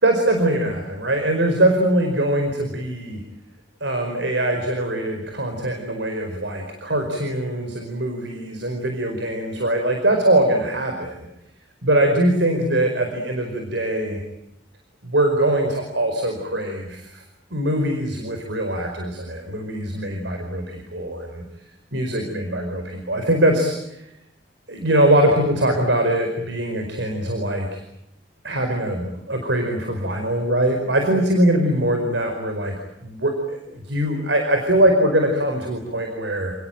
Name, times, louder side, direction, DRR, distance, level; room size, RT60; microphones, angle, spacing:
voice 1, 0.0-3.2 3.8-11.2 11.8-14.2 15.0-17.2 17.5-21.4 21.9-24.1 24.7-27.8 28.4-32.7 33.0-36.5, right 1 dB, 85° right, 4 dB, 4.9 m, -22 dB
30.0 x 19.5 x 9.1 m, 0.84 s
head